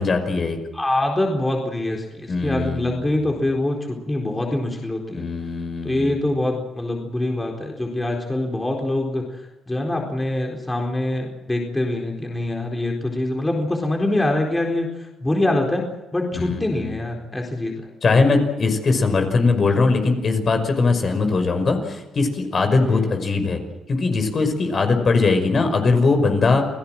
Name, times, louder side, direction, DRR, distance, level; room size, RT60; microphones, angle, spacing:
voice 1, 0.0-0.6 2.3-3.1 5.1-6.1 16.3-17.0 18.0-23.6 23.9-26.6, left 3 dB, 45° left, 6 dB, 5.6 m, -20 dB
voice 2, 0.7-5.3 5.8-9.2 9.7-15.9 16.1-17.8 22.8-23.4, left 1 dB, 15° left, 1 dB, 4.3 m, -24 dB
28.5 x 17.5 x 7.7 m, 1.0 s
cardioid pair, 90°, 0 cm